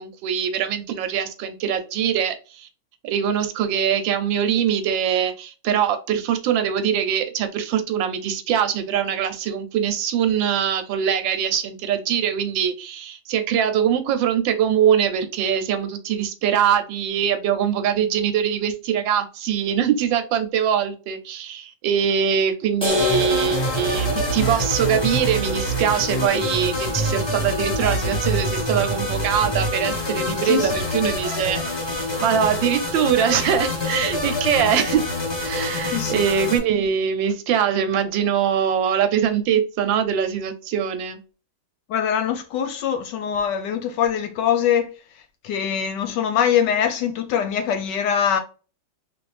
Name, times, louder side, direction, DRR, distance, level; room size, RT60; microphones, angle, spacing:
voice 1, 0.0-2.7 3.0-35.0 35.4-41.2, right 8 dB, 75° right, 1.3 m, -22 dB
sound 1, 22.8-29.8, left 3 dB, 5° left, 0.9 m, -33 dB
sound 2, 22.9-36.6, equal, 30° left, 0.5 m, -26 dB
voice 2, 35.9-36.3 41.9-44.9 45.4-48.4, left 8 dB, 75° left, 1.1 m, -23 dB
3.7 x 2.5 x 3.2 m
omnidirectional pair, 2.2 m